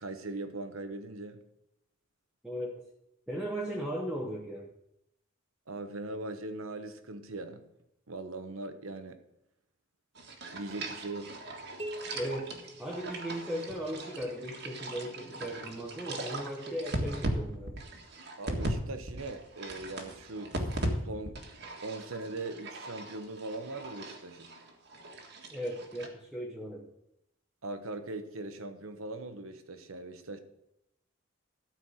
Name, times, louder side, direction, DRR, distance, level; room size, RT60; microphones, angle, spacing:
voice 1, 0.0-1.4 5.7-7.6 8.1-9.2 10.5-11.4 18.4-21.4 21.8-24.5 27.6-30.4, right 2 dB, 85° right, 1.1 m, -40 dB
voice 2, 2.4-2.8 3.3-4.7 12.1-17.8 25.5-26.9, equal, 5° right, 1.2 m, -37 dB
sound 1, 10.1-18.8 19.1-20.9 21.2-26.1, right 1 dB, 55° right, 1.6 m, -39 dB
sound 2, 11.8-13.7, equal, 30° right, 1.4 m, -44 dB
13.0 x 4.6 x 7.9 m
head